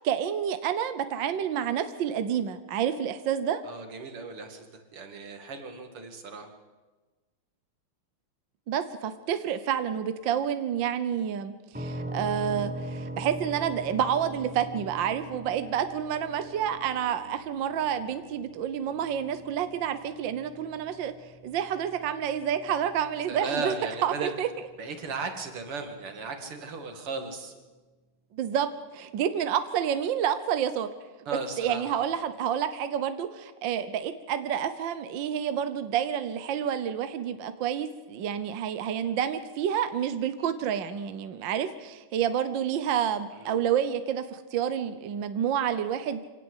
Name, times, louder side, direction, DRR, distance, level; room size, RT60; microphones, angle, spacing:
voice 1, 0.0-3.6 8.7-21.1 21.4-23.7 24.0-24.5 28.3-30.9 31.6-46.3, right 9 dB, 65° right, 11 dB, 1.6 m, -29 dB
voice 2, 3.6-6.5 23.3-24.4 24.8-27.5 31.3-32.0 43.3-43.6, right 4 dB, 85° right, 6 dB, 3.2 m, -36 dB
sound 1, 11.7-25.4, right 1 dB, 5° right, 1.6 m, -42 dB
26.0 x 18.0 x 8.1 m, 1.2 s
omnidirectional pair, 2.4 m